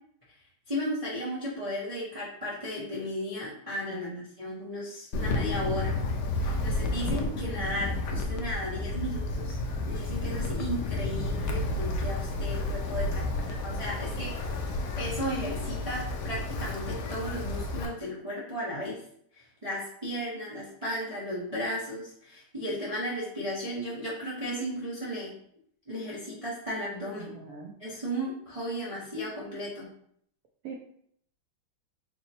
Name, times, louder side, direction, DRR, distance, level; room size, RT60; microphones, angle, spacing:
voice 1, 0.7-4.1 4.4-6.0 6.4-9.6 9.8-13.3 13.6-14.3 15.0-19.0 19.3-25.3 25.9-27.3 27.8-29.9, equal, 65° right, -8 dB, 0.3 m, -35 dB
voice 2, 3.9-4.3 13.1-13.5 27.2-27.8 30.6-30.8, right 4 dB, 85° right, 0 dB, 0.8 m, -42 dB
Wind, 5.1-17.9, left 2 dB, 70° left, 1.0 m, -31 dB
4.0 x 2.1 x 4.2 m, 0.66 s
omnidirectional pair, 2.2 m